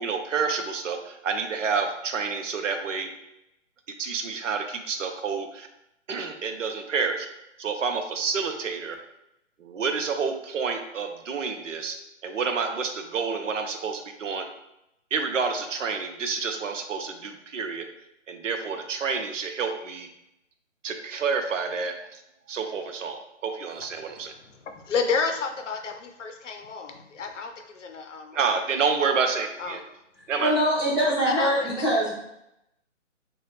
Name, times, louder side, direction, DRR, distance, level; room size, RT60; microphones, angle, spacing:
voice 1, 0.0-3.1 4.0-5.7 6.1-7.3 7.6-9.0 9.6-12.0 12.2-14.5 15.1-17.9 18.3-20.1 20.8-22.2 22.5-24.3 28.3-29.8 30.3-30.5, right 5 dB, 75° right, 5 dB, 0.7 m, -29 dB
voice 2, 24.0-28.4 28.8-28.9 29.6-29.8 31.2-32.1, left 5 dB, 70° left, 5 dB, 0.6 m, -31 dB
voice 3, 30.4-32.1, equal, 20° right, -7 dB, 0.6 m, -23 dB
2.9 x 2.3 x 3.1 m, 0.83 s
hypercardioid pair, 160°, 38 cm